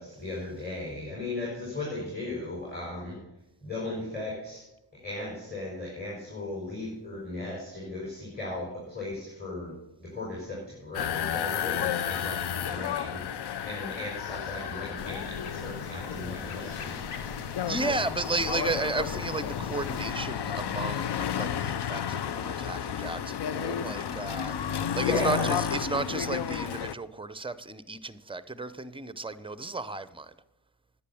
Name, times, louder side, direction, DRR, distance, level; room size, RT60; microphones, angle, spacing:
voice 1, 0.0-3.2 3.6-4.6 4.9-9.7 10.0-13.2 13.6-17.2 25.0-25.5, left 2 dB, 20° left, 5.2 m, -36 dB
sound 1, 10.9-26.9, left 9 dB, 55° left, 0.7 m, -32 dB
sound 2, 15.0-20.1, left 5 dB, 80° left, 1.2 m, -40 dB
voice 2, 17.7-30.3, right 3 dB, 10° right, 0.7 m, -34 dB
10.0 x 8.7 x 7.0 m
cardioid pair, 50°, 50 cm